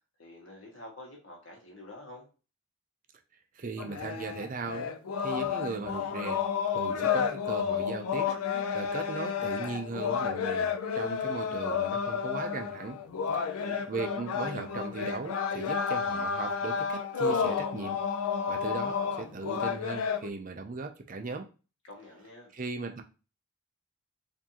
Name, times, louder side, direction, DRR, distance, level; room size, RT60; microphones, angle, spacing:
voice 1, 0.2-2.3 13.3-13.9 21.8-22.5, left 1 dB, 60° left, -1 dB, 1.5 m, -48 dB
voice 2, 3.6-4.9 5.2-6.4 6.7-13.0 13.9-18.0 18.5-21.5 22.5-23.0, right 3 dB, 35° right, 5 dB, 0.4 m, -38 dB
sound 1, 3.8-20.3, left 6 dB, 85° left, 0.4 m, -31 dB
4.5 x 2.6 x 2.8 m, 0.33 s
head